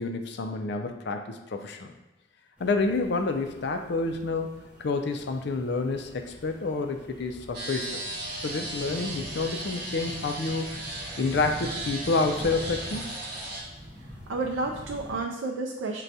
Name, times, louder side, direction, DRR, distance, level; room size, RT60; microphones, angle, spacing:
voice 1, 0.0-1.9 2.6-4.5 4.8-8.0 8.4-10.7 11.2-13.2, left 3 dB, 55° left, 6 dB, 0.4 m, -29 dB
sound 1, 2.6-15.2, equal, 5° right, 0.7 m, -45 dB
sound 2, 7.5-13.6, right 2 dB, 50° right, 0.9 m, -36 dB
voice 2, 14.0-16.0, right 3 dB, 80° right, 1 dB, 0.4 m, -31 dB
6.1 x 2.2 x 2.7 m, 0.98 s
head